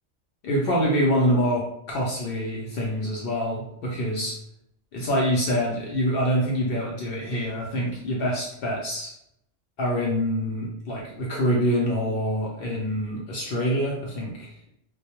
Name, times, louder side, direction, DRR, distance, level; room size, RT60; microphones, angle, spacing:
voice 1, 0.4-4.3 4.9-9.1 9.8-14.5, equal, 60° left, -3 dB, 0.7 m, -25 dB
2.2 x 2.0 x 2.8 m, 0.76 s
omnidirectional pair, 1.2 m